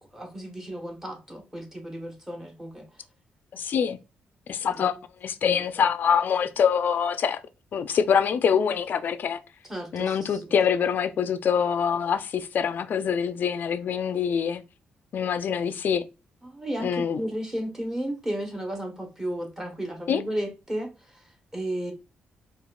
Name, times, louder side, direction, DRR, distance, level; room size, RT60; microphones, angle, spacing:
voice 1, 0.1-2.8 9.7-10.6 16.4-20.9 21.5-21.9, right 1 dB, 10° right, 1.0 m, -33 dB
voice 2, 3.5-4.0 4.5-7.4 7.7-9.4 9.9-14.6 15.1-16.0 16.8-17.2 20.1-20.2, left 7 dB, 60° left, 0.3 m, -25 dB
4.1 x 2.3 x 2.3 m
cardioid pair, 95°, 4 cm